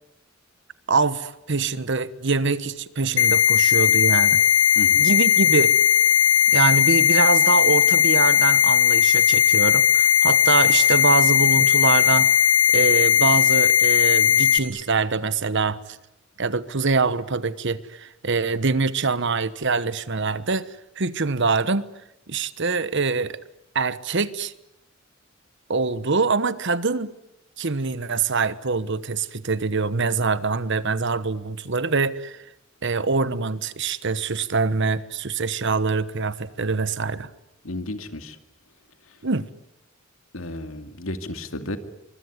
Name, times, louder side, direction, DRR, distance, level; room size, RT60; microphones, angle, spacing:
voice 1, 0.9-4.4 5.0-5.7 6.5-12.3 12.7-16.0 16.4-21.9 22.3-23.4 23.7-24.5 25.7-27.1 27.6-32.4 32.8-37.3 39.2-39.4, right 4 dB, 60° right, 15 dB, 1.2 m, -24 dB
sound 1, 3.2-14.6, left 9 dB, 60° left, 2.1 m, -17 dB
voice 2, 37.6-38.4 40.3-41.8, left 1 dB, 80° left, 8 dB, 2.3 m, -33 dB
24.5 x 24.0 x 9.7 m, 0.88 s
head